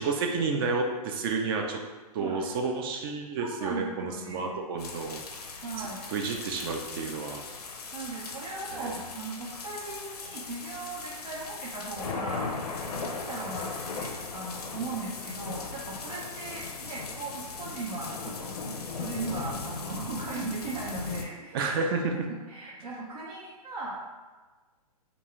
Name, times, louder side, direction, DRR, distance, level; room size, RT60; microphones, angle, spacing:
voice 1, 0.0-1.8 2.1-5.2 5.8-7.4 8.7-8.9 21.5-22.1, right 4 dB, 35° right, 2 dB, 0.4 m, -30 dB
voice 2, 3.4-4.6 5.6-6.0 7.9-12.5 13.1-21.7 22.5-24.1, right 3 dB, 75° right, -6 dB, 0.6 m, -38 dB
sound 1, 4.8-21.2, left 4 dB, 80° left, 0.5 m, -38 dB
2.5 x 2.2 x 3.0 m, 1.3 s
hypercardioid pair, 125°, 20 cm